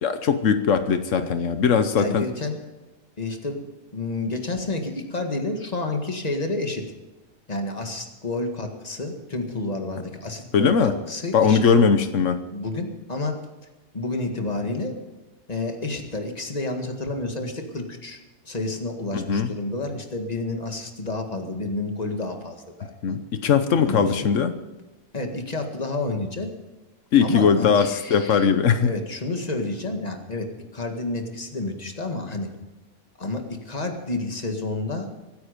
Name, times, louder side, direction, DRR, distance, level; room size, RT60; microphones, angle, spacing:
voice 1, 0.0-2.3 10.5-10.9 11.3-12.4 19.1-19.5 23.0-24.5 27.1-28.9, left 6 dB, 85° left, 9 dB, 1.3 m, -20 dB
voice 2, 2.0-2.6 3.2-3.6 3.9-6.8 7.5-11.6 12.5-13.4 13.9-14.9 15.5-18.2 18.4-23.2 23.8-24.3 25.1-26.5 27.2-28.5 28.8-30.5 30.7-32.5 33.2-35.1, left 2 dB, 35° left, 4 dB, 1.9 m, -30 dB
24.5 x 9.3 x 5.2 m, 1.1 s
omnidirectional pair, 1.3 m